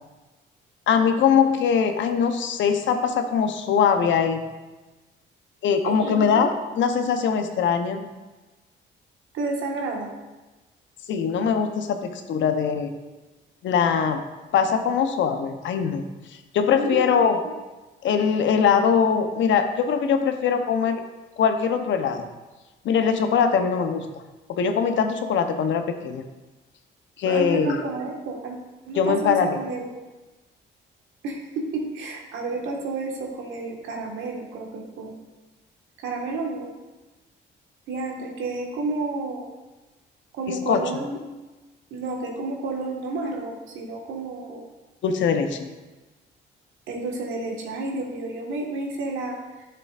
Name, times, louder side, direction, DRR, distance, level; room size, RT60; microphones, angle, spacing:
voice 1, 0.9-4.5 5.6-6.5 6.7-8.0 11.1-12.9 13.6-14.2 14.5-16.1 16.5-17.4 18.0-21.0 21.4-22.3 22.8-24.2 24.5-26.2 27.2-27.8 29.0-29.6 40.5-40.8 45.0-45.7, left 6 dB, 75° left, 7 dB, 0.8 m, -22 dB
voice 2, 5.8-6.5 9.3-10.1 16.7-17.2 17.4-17.5 27.2-28.6 28.8-29.9 31.2-35.2 36.0-36.7 37.9-39.5 40.3-41.2 41.9-44.7 46.9-49.4, right 3 dB, 80° right, 0 dB, 1.5 m, -30 dB
11.0 x 6.8 x 2.5 m, 1.2 s
cardioid pair, 90°, 20 cm